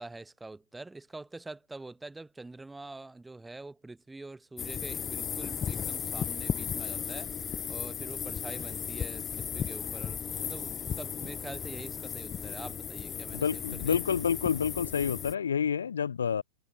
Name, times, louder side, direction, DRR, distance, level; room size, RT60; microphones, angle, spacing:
voice 1, 0.0-7.3 7.7-14.0, right 2 dB, 5° right, 3.1 m, -45 dB
sound 1, 4.6-15.4, left 8 dB, 25° left, 1.0 m, -35 dB
voice 2, 13.3-16.4, left 7 dB, 75° left, 1.1 m, -29 dB
figure-of-eight pair, 100°, 0 cm